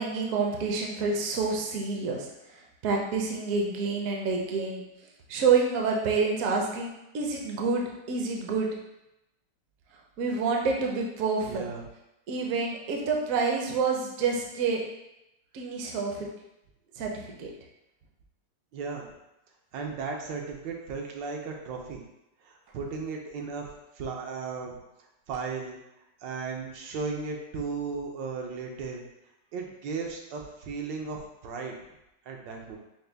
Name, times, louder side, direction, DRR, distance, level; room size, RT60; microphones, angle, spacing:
voice 1, 0.0-2.3 2.5-4.8 5.3-8.7 10.2-11.7 12.3-14.8 15.5-16.3 17.0-17.5, right 4 dB, 65° right, 0 dB, 0.9 m, -28 dB
voice 2, 11.4-11.8 17.0-17.1 18.7-19.1 19.7-22.0 22.4-24.8 25.3-25.8 26.2-29.1 29.5-31.8 32.3-32.8, right 4 dB, 80° right, 1 dB, 1.4 m, -35 dB
5.1 x 2.2 x 3.3 m, 0.89 s
omnidirectional pair, 1.9 m